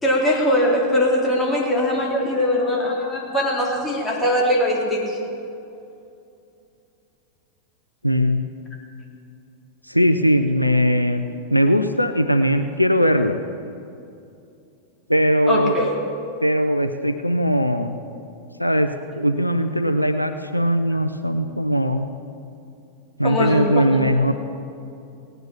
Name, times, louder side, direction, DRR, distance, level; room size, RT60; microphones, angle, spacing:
voice 1, 0.0-5.2 15.5-16.0 23.2-24.0, left 1 dB, 10° left, -3 dB, 3.2 m, -21 dB
voice 2, 8.0-8.4 9.9-13.4 15.1-15.7 16.4-18.0 18.6-18.9 19.2-22.1 23.2-24.3, equal, 90° left, 8 dB, 0.5 m, -19 dB
18.0 x 9.4 x 5.8 m, 2.6 s
figure-of-eight pair, 90°, 0 cm